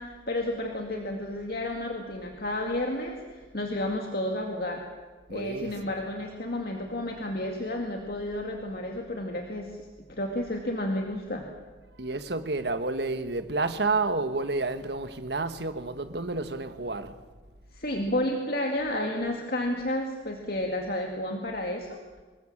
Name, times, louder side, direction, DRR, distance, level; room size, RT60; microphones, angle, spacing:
voice 1, 0.0-4.8 5.3-11.4 17.7-22.0, left 1 dB, 55° left, 2.2 m, -31 dB
voice 2, 5.3-6.1 12.0-17.2, right 3 dB, 65° right, 1.4 m, -30 dB
25.5 x 21.0 x 7.4 m
head